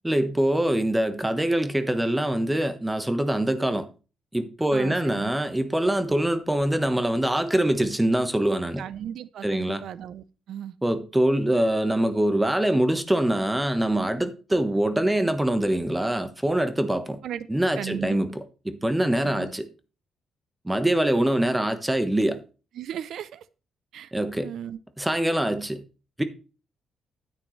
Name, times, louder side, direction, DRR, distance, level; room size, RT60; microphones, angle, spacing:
voice 1, 0.0-3.9 4.3-8.8 9.4-9.8 10.8-17.2 17.5-19.7 20.6-22.4 24.1-24.5 25.0-25.8 26.2-26.3, right 1 dB, 10° right, 1.2 m, -24 dB
voice 2, 4.7-5.3 8.8-10.7 17.2-17.5 17.8-18.2 19.2-19.5 22.8-23.4 23.9-24.1 24.4-24.8, right 10 dB, 70° right, 0.6 m, -36 dB
9.7 x 9.0 x 3.2 m
cardioid pair, 90°, 0 cm